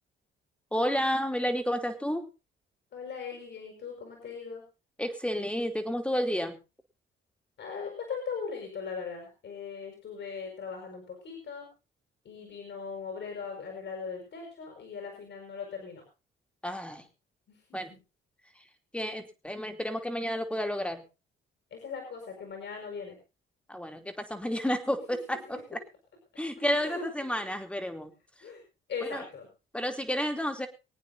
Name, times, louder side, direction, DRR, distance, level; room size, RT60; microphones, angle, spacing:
voice 1, 0.7-2.3 5.0-6.6 16.6-17.0 17.7-17.9 18.9-21.0 23.7-25.8 26.4-28.1 29.1-29.2 29.7-30.7, equal, 5° left, 5 dB, 2.9 m, -31 dB
voice 2, 2.9-4.6 7.6-11.7 12.2-16.0 17.5-18.0 21.7-23.2 24.9-25.6 26.8-27.1 28.4-28.6 28.9-29.5, left 5 dB, 65° left, 2 dB, 6.4 m, -39 dB
25.0 x 9.1 x 4.0 m, 0.31 s
cardioid pair, 90°, 20 cm